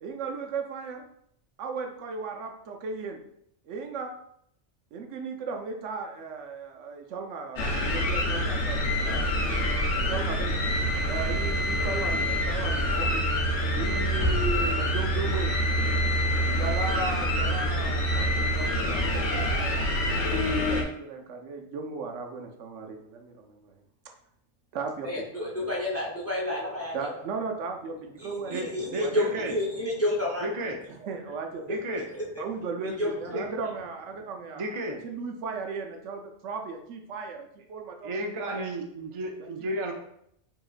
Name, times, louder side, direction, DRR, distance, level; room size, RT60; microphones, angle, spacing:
voice 1, 0.0-1.0 1.6-3.2 3.6-4.1 4.9-9.3 9.9-10.6 11.1-13.3 13.7-15.6 16.4-19.9 20.5-23.8 24.0-24.1 24.7-25.7 26.9-28.7 29.0-29.1 30.9-31.7 32.4-34.7 35.0-38.6 39.4-39.5, right 4 dB, 85° right, 4 dB, 0.9 m, -36 dB
sound 1, 7.6-20.8, equal, 75° left, 1.0 m, -26 dB
voice 2, 25.0-27.2 28.2-30.5 31.7-31.8 33.0-33.4, left 1 dB, 15° left, -3 dB, 0.6 m, -30 dB
voice 3, 28.5-29.5 30.4-30.8 31.7-32.0 33.3-33.4 34.5-35.0 38.0-39.9, right 1 dB, 55° right, 2 dB, 0.3 m, -32 dB
4.8 x 3.0 x 2.4 m, 0.73 s
omnidirectional pair, 1.2 m